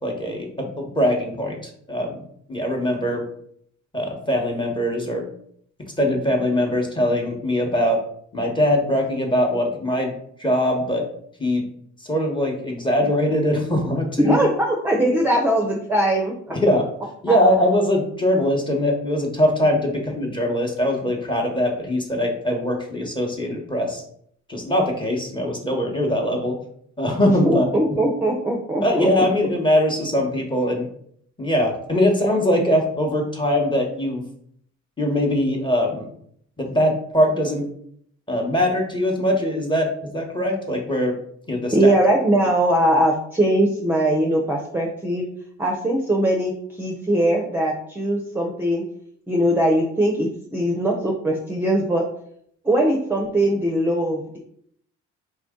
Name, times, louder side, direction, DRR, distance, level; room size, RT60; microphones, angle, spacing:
voice 1, 0.0-2.2 2.5-3.2 3.9-5.2 6.0-8.0 8.3-10.1 10.4-11.0 11.4-11.6 12.0-14.4 16.5-16.8 17.2-24.0 24.5-26.5 27.0-27.6 28.8-30.9 31.4-34.2 35.0-36.1 36.6-37.6 38.3-39.9 40.1-41.1 41.5-41.9, left 1 dB, 15° left, 0 dB, 1.1 m, -21 dB
voice 2, 14.2-16.6 17.3-17.4 27.2-29.5 41.7-45.3 45.6-48.8 49.3-52.0 52.6-54.4, right 1 dB, 5° right, 0 dB, 0.6 m, -21 dB
4.4 x 2.5 x 3.7 m, 0.66 s
cardioid pair, 90°, 30 cm